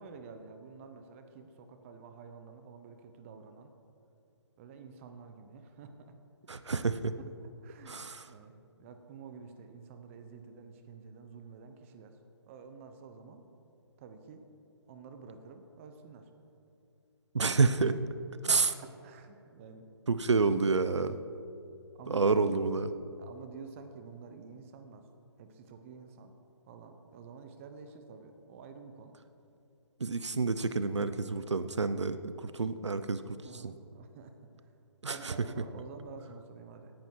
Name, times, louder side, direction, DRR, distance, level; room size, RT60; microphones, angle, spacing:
voice 1, 0.0-3.7 4.6-6.1 7.4-12.2 12.5-13.5 14.0-14.5 14.9-16.3 18.5-19.9 21.9-22.4 23.2-25.1 25.4-26.3 26.7-29.2 33.4-34.7 35.0-36.9, right 5 dB, 30° right, 7 dB, 1.0 m, -50 dB
voice 2, 6.5-7.1 7.9-8.3 17.3-18.0 18.4-18.7 20.1-21.2 22.1-22.9 30.0-33.7 35.0-35.3, right 4 dB, 85° right, 12 dB, 0.7 m, -29 dB
17.5 x 10.5 x 4.7 m, 2.7 s
figure-of-eight pair, 145°, 15 cm